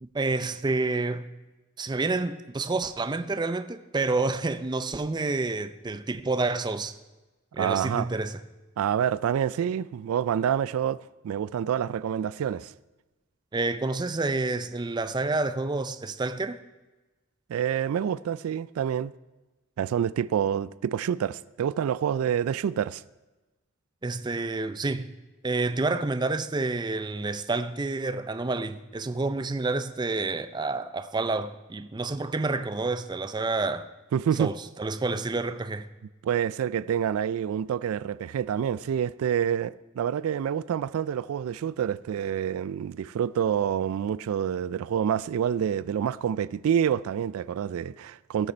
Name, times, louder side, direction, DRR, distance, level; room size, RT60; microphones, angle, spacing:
voice 1, 0.0-1.3 1.8-6.9 7.5-8.4 13.5-16.6 24.0-25.1 25.4-33.9 34.4-34.5 34.8-35.9, right 3 dB, 20° right, 0.4 m, -29 dB
voice 2, 7.6-8.1 8.8-12.7 17.5-19.1 19.8-23.0 34.1-34.5 36.2-48.5, right 8 dB, 80° right, 0.3 m, -27 dB
18.0 x 6.5 x 4.4 m
head